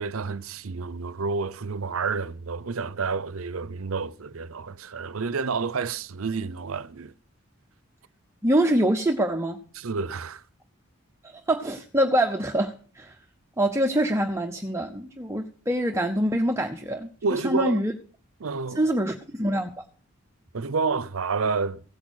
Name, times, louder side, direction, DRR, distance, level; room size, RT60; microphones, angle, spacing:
voice 1, 0.0-7.1 9.7-10.4 17.2-17.8 18.4-18.9 20.5-21.8, right 4 dB, 80° right, 0.7 m, -29 dB
voice 2, 8.4-9.6 11.2-13.2 13.6-17.9 18.8-19.7, right 1 dB, 15° right, 0.8 m, -25 dB
16.5 x 8.5 x 6.3 m
head